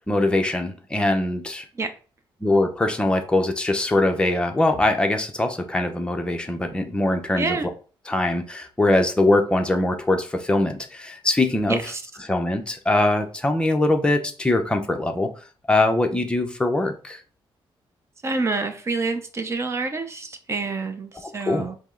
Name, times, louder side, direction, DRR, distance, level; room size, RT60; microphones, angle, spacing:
voice 1, 0.1-1.6 2.4-7.6 8.1-11.8 12.2-15.3 15.7-17.2 21.5-21.7, left 2 dB, 10° left, 0.6 m, -22 dB
voice 2, 7.4-7.7 11.7-12.0 18.2-21.8, right 3 dB, 30° right, 0.7 m, -27 dB
5.2 x 2.1 x 3.7 m
cardioid pair, 110°, 9 cm